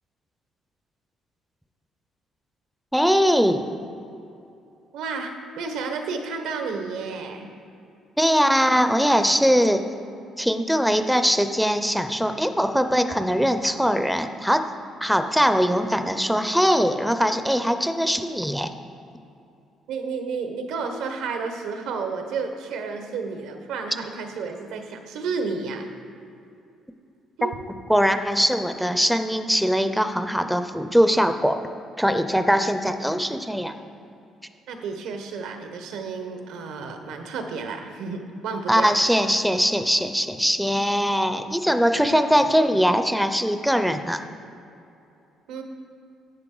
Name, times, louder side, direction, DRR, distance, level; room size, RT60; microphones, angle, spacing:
voice 1, 2.9-3.6 8.2-9.8 10.4-14.7 15.0-18.7 27.9-31.6 32.0-33.8 38.7-44.2, equal, ahead, 8 dB, 0.4 m, -21 dB
voice 2, 4.9-7.5 19.9-25.9 27.4-27.5 34.7-38.9 45.5-45.6, right 4 dB, 90° right, 5 dB, 1.0 m, -31 dB
10.5 x 8.1 x 3.8 m, 2.6 s
cardioid pair, 150°, 0 cm